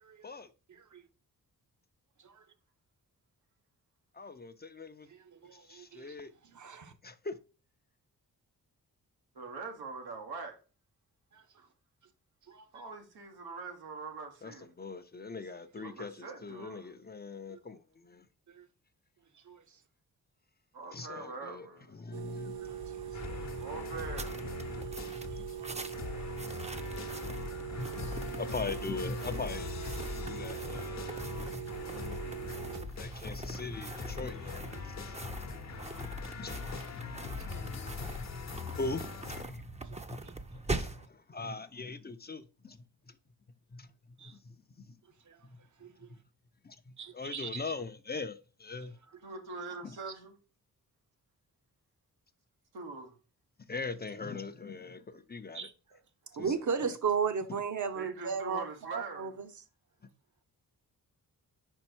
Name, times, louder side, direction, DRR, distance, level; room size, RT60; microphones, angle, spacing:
voice 1, 4.2-5.1 5.7-6.3 6.6-7.4 14.4-18.3 20.9-22.8 23.1-23.2 24.7-25.7 27.7-31.6 33.0-34.9 35.2-35.3 36.0-36.5 36.9-37.7 38.0-38.4 38.8-40.3 40.5-42.8 43.7-43.9 44.2-44.9 45.4-45.6 46.6-49.0 49.8-49.9 53.7-55.7 56.4-57.0, left 3 dB, 25° left, 0.6 m, -42 dB
voice 2, 5.1-6.1 6.5-6.9 11.3-11.4 12.5-12.7 17.5-17.6 18.5-18.6 19.5-19.6 22.7-23.0 23.3-23.4 25.3-25.7 27.8-28.0 34.7-34.8 37.5-37.9 39.9-40.3 44.2-44.3 45.3-45.4 45.8-45.9 47.0-47.6 55.5-55.7 56.3-59.5, right 6 dB, 55° right, 0.9 m, -36 dB
voice 3, 9.3-10.6 11.6-11.7 12.7-14.7 15.8-16.9 20.7-21.9 23.6-24.4 49.2-50.3 52.7-53.1 57.9-59.4, right 4 dB, 90° right, 1.4 m, -43 dB
sound 1, 22.1-32.9, right 9 dB, 75° right, 0.6 m, -42 dB
sound 2, 22.6-41.1, right 2 dB, 20° right, 0.7 m, -43 dB
sound 3, 23.1-25.6 25.8-39.4, left 5 dB, 45° left, 0.9 m, -42 dB
5.2 x 4.5 x 4.4 m
cardioid pair, 65°, 37 cm